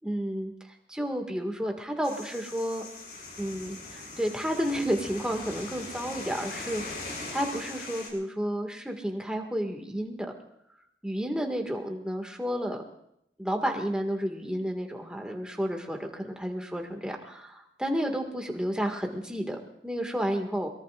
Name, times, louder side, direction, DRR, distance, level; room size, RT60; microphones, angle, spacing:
voice 1, 0.0-0.5 0.9-2.9 3.4-7.0 7.3-10.3 11.0-12.8 13.4-20.7, equal, 5° right, 2 dB, 1.9 m, -31 dB
sound 1, 2.0-8.1, left 3 dB, 60° left, 5.5 m, -41 dB
24.0 x 22.0 x 2.5 m, 0.77 s
head